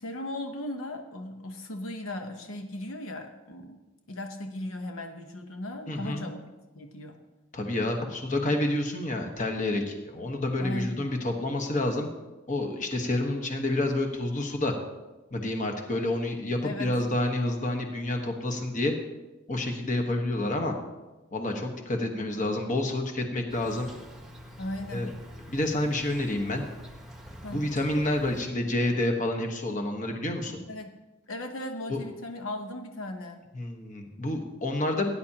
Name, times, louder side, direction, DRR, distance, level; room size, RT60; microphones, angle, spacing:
voice 1, 0.0-3.8 4.1-7.2 10.6-11.0 16.6-16.9 24.6-25.1 27.4-27.7 30.7-30.9 31.3-33.4, left 1 dB, 75° left, 4 dB, 1.0 m, -37 dB
voice 2, 5.9-6.2 7.5-12.1 12.5-14.7 15.3-18.9 19.5-20.7 21.3-23.9 24.9-25.1 25.5-26.7 27.5-30.6 31.9-32.0 33.5-35.1, left 1 dB, 35° left, 3 dB, 1.3 m, -29 dB
Insect, 23.5-28.5, equal, ahead, 1.1 m, -46 dB
18.0 x 10.0 x 2.9 m, 1.1 s
head